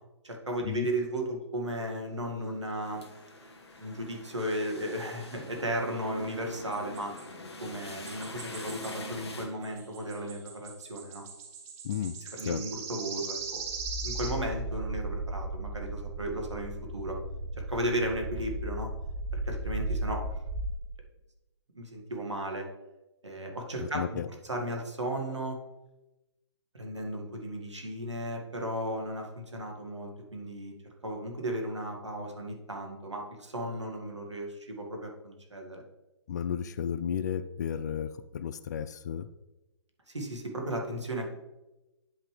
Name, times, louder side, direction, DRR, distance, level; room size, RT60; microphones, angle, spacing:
voice 1, 0.2-3.0 3.8-7.1 7.6-11.2 12.3-13.6 14.0-17.2 17.7-18.9 19.3-20.2 21.7-22.7 23.2-24.2 24.4-25.6 26.7-30.7 31.0-35.8 40.1-41.4, right 1 dB, 80° right, 2 dB, 2.1 m, -35 dB
sound 1, 2.8-9.5, left 2 dB, 65° left, 1.3 m, -44 dB
sound 2, 6.7-7.3 8.1-9.0 9.3-14.4, right 6 dB, 35° right, 1.6 m, -41 dB
voice 2, 11.8-12.1 12.5-12.6 23.8-24.3 36.3-39.3, left 8 dB, 40° left, 14 dB, 0.4 m, -33 dB
sound 3, 13.4-20.7, right 1 dB, 10° right, 0.9 m, -35 dB
9.9 x 5.6 x 3.4 m, 1.0 s
figure-of-eight pair, 130°, 15 cm